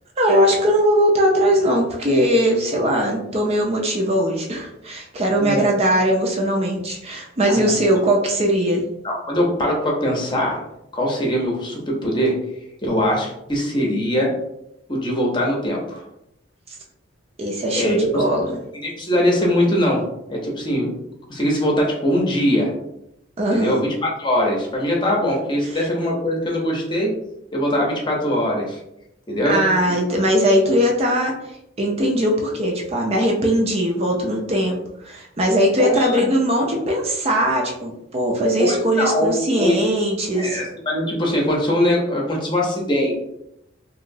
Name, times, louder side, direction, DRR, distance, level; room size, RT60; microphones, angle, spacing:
voice 1, 0.2-8.8 17.4-18.5 23.4-23.8 29.4-31.3 31.8-34.8 35.0-40.6, equal, 30° right, 0 dB, 0.4 m, -20 dB
voice 2, 5.4-5.7 7.5-7.7 9.0-10.6 10.9-12.4 12.8-14.3 14.9-16.0 17.7-18.3 18.8-20.0 20.3-20.9 21.3-22.7 23.5-27.1 27.5-28.8 29.3-29.6 35.8-36.3 38.6-39.8 40.3-43.2, equal, 25° left, -2 dB, 0.7 m, -21 dB
3.0 x 2.9 x 2.6 m, 0.81 s
head